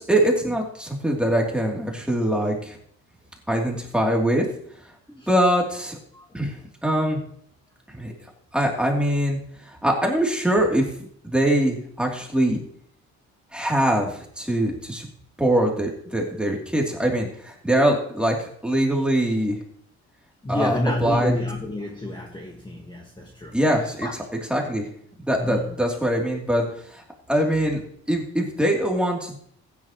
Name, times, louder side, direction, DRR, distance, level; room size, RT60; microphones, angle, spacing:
voice 1, 0.0-2.8 3.5-4.4 5.1-6.0 6.3-6.5 6.8-7.2 8.0-8.1 8.5-9.4 9.7-10.8 11.2-12.6 13.5-15.1 15.4-19.6 20.5-21.3 23.5-24.1 24.5-24.8 25.2-26.6 26.9-27.0 27.3-27.8 28.1-29.4, right 1 dB, 5° right, -1 dB, 3.0 m, -23 dB
voice 2, 20.4-23.6 24.0-24.1 25.4-25.7, left 1 dB, 15° left, 0 dB, 1.8 m, -29 dB
15.0 x 10.0 x 3.1 m, 0.63 s
cardioid pair, 90°, 30 cm